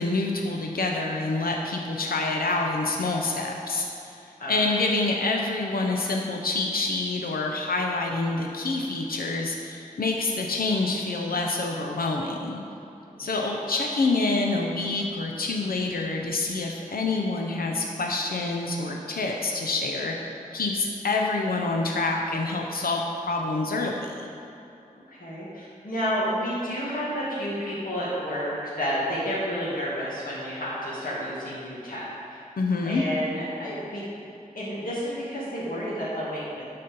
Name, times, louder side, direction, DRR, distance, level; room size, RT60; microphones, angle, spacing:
voice 1, 0.0-4.2 4.5-12.6 13.2-20.2 20.5-24.3 32.6-33.0, left 3 dB, 90° left, 1 dB, 0.7 m, -27 dB
voice 2, 4.4-4.7 13.1-13.5 25.1-32.4 32.8-34.0 34.5-36.6, equal, 70° left, -8 dB, 2.0 m, -31 dB
11.5 x 4.3 x 5.3 m, 2.8 s
wide cardioid pair, 85°, 15 cm